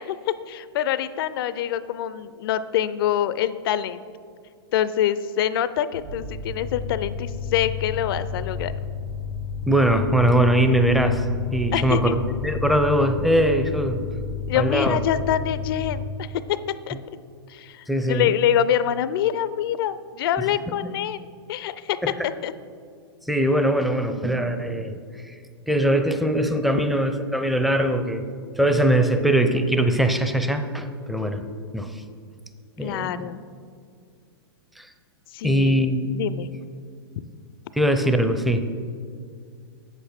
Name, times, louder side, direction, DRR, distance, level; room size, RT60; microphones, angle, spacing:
voice 1, 0.0-4.0 4.7-8.7 11.7-12.1 14.5-16.6 16.9-17.0 17.5-22.0 22.4-22.5 32.8-33.4 35.3-35.8 36.1-36.5 37.2-37.3, left 10 dB, 60° left, 14 dB, 0.4 m, -25 dB
sound 1, 5.9-15.9, left 5 dB, 70° right, 1.3 m, -31 dB
voice 2, 9.7-11.3 11.5-14.0 14.5-15.0 17.9-18.3 22.0-22.3 23.3-25.0 25.2-25.4 25.7-28.3 28.6-31.5 31.7-32.0 32.8-33.3 34.8-34.9 35.4-36.2 37.7-38.7, right 1 dB, ahead, 7 dB, 0.5 m, -21 dB
8.0 x 7.7 x 4.3 m, 2.2 s
hypercardioid pair, 125°, 14 cm